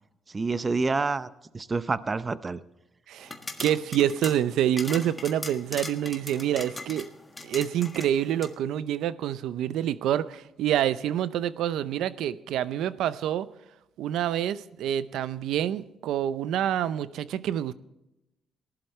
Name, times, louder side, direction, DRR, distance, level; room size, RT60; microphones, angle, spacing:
voice 1, 0.3-2.6, right 3 dB, 30° right, 0.7 m, -28 dB
sound 1, 3.2-8.5, left 2 dB, 15° left, 1.5 m, -40 dB
voice 2, 3.6-7.1 7.4-13.5 14.0-17.7, right 11 dB, 85° right, 0.6 m, -27 dB
19.0 x 11.5 x 3.2 m
cardioid pair, 90°, 0 cm